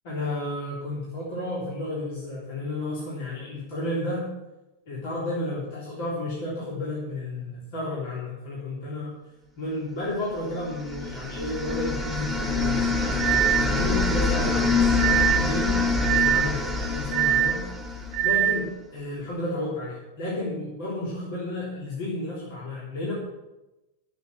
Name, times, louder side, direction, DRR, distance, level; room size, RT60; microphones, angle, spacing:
voice 1, 0.0-4.3 4.9-9.2 9.6-23.1, left 2 dB, 50° left, -5 dB, 3.6 m, -32 dB
sound 1, 10.5-18.5, left 3 dB, 5° left, 2.0 m, -26 dB
sound 2, 11.7-11.8 13.2-13.7 15.0-15.5 16.0-16.6 17.1-17.6 18.1-18.6, right 11 dB, 40° right, 0.4 m, -23 dB
13.0 x 7.7 x 7.5 m, 1.0 s
figure-of-eight pair, 90°, 0 cm